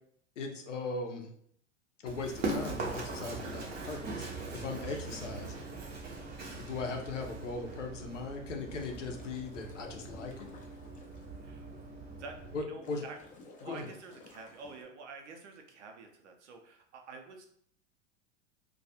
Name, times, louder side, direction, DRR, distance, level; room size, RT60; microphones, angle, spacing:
voice 1, 0.4-1.3 2.0-5.7 6.5-10.5 12.5-13.0 13.6-13.9, left 3 dB, 80° left, 3 dB, 0.6 m, -39 dB
Run, 2.1-12.6, right 3 dB, 30° right, 0.6 m, -41 dB
sound 1, 8.4-11.2 11.8-11.9 12.7-14.8, left 2 dB, 20° left, 0.5 m, -53 dB
voice 2, 12.1-13.2 13.6-17.5, right 4 dB, 70° right, 3 dB, 0.6 m, -48 dB
2.3 x 2.2 x 2.7 m, 0.63 s
hypercardioid pair, 95°, 36 cm